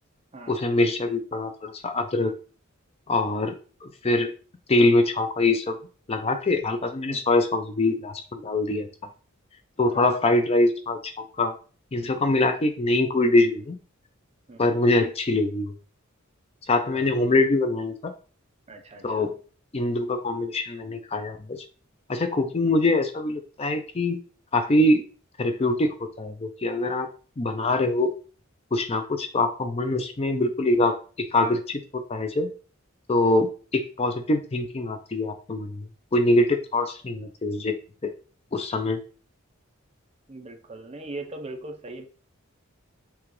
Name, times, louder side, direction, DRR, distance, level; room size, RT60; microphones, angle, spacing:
voice 1, 0.5-2.3 3.1-3.5 3.8-4.3 4.7-5.8 6.1-8.9 9.8-11.5 11.9-13.8 14.6-15.7 16.7-18.1 19.0-19.4 19.7-21.6 22.1-24.2 24.5-25.0 25.4-27.1 27.4-28.1 28.7-32.5 33.1-37.8 38.0-38.1 38.5-39.0, left 2 dB, 30° left, 6 dB, 0.5 m, -24 dB
voice 2, 18.7-19.3 40.3-42.1, right 2 dB, 30° right, 4 dB, 0.7 m, -40 dB
5.8 x 2.4 x 3.2 m, 0.37 s
head